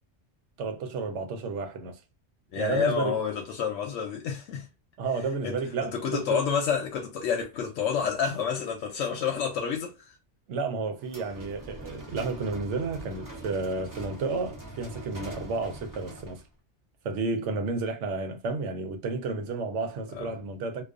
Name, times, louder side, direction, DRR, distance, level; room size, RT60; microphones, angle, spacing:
voice 1, 0.6-2.0 2.6-3.2 5.0-6.4 10.5-16.4 17.0-20.8, right 4 dB, 90° right, 0.9 m, -31 dB
voice 2, 2.5-4.7 5.4-10.1 20.2-20.3, left 7 dB, 85° left, 0.9 m, -29 dB
sound 1, 11.0-16.5, right 1 dB, 25° right, 0.5 m, -42 dB
2.3 x 2.3 x 2.3 m
omnidirectional pair, 1.2 m